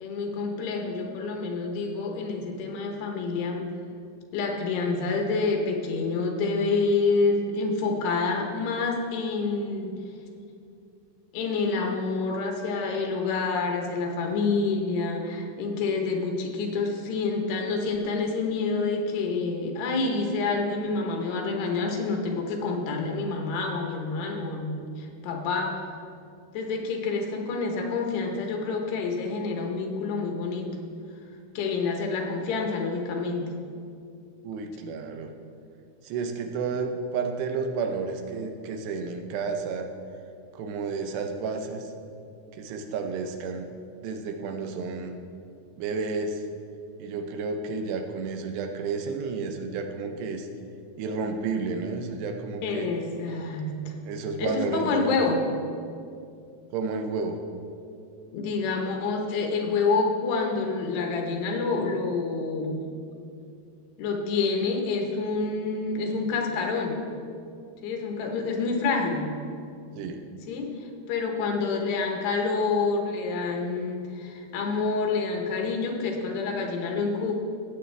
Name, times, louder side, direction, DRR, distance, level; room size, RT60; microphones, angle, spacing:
voice 1, 0.0-3.7 4.3-10.0 11.3-25.8 26.5-30.8 31.5-33.5 52.6-53.9 54.4-55.6 58.3-62.8 64.0-67.0 67.8-69.3 70.5-77.3, left 4 dB, 80° left, 2 dB, 3.2 m, -28 dB
voice 2, 34.4-35.3 36.0-39.9 40.5-41.9 42.5-43.7 44.0-45.1 45.8-46.4 47.0-50.5 51.0-52.9 54.0-55.2 56.7-57.4 70.0-70.2, right 4 dB, 85° right, 5 dB, 3.0 m, -31 dB
17.5 x 8.0 x 3.3 m, 2.5 s
omnidirectional pair, 4.7 m